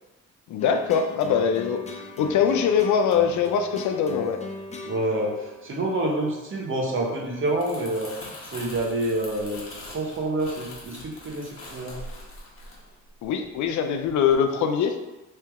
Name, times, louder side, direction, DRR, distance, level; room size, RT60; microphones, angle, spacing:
voice 1, 0.5-4.4 13.2-15.0, left 7 dB, 70° left, 5 dB, 0.5 m, -23 dB
sound 1, 0.6-7.1, left 2 dB, 25° left, 0.5 m, -40 dB
voice 2, 4.8-8.1 8.5-9.6 9.9-11.9, right 1 dB, 40° right, -2 dB, 1.0 m, -27 dB
Crumpling crinkling, 7.4-13.7 14.0-14.3, left 1 dB, 45° left, 1.1 m, -42 dB
3.3 x 2.8 x 3.5 m, 1.1 s
cardioid pair, 90°, 30 cm